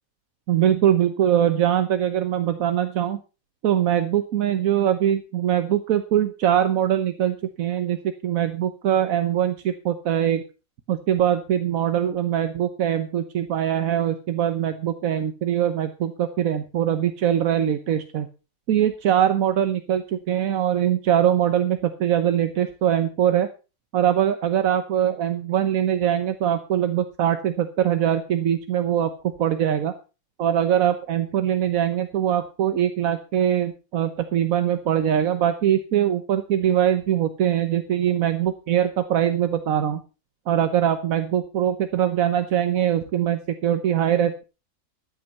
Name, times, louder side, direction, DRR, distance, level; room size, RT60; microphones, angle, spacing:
voice 1, 0.5-3.2 3.6-10.4 10.9-18.3 18.7-23.5 23.9-29.1 29.4-29.9 30.4-40.0 40.5-44.4, right 10 dB, 80° right, 10 dB, 1.3 m, -22 dB
13.5 x 8.7 x 5.3 m, 0.33 s
omnidirectional pair, 1.4 m